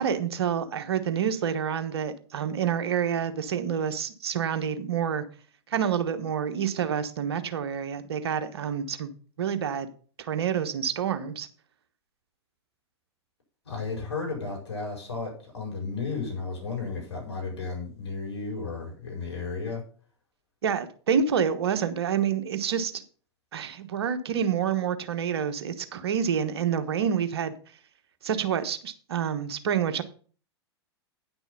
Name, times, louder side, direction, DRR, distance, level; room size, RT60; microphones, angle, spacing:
voice 1, 0.0-5.2 5.7-9.1 9.4-9.9 10.2-11.5 20.6-23.0 23.5-27.5 28.2-30.0, right 8 dB, 65° right, 1.2 m, -28 dB
voice 2, 13.6-19.8, left 4 dB, 75° left, 5.0 m, -33 dB
10.0 x 6.1 x 5.4 m
figure-of-eight pair, 100°, 14 cm